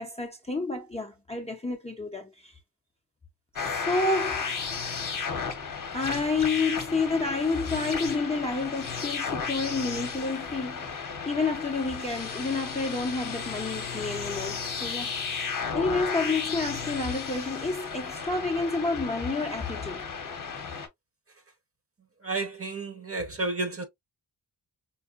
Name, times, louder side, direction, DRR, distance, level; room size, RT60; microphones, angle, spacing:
voice 1, 0.0-2.5 3.6-4.7 5.9-10.8 11.3-15.1 15.4-20.1, left 3 dB, 15° left, 0.5 m, -29 dB
sound 1, 3.6-20.9, left 5 dB, 50° left, 0.8 m, -34 dB
voice 2, 22.2-23.8, right 3 dB, 30° right, 0.8 m, -31 dB
4.6 x 2.1 x 2.4 m
wide cardioid pair, 110°, 42 cm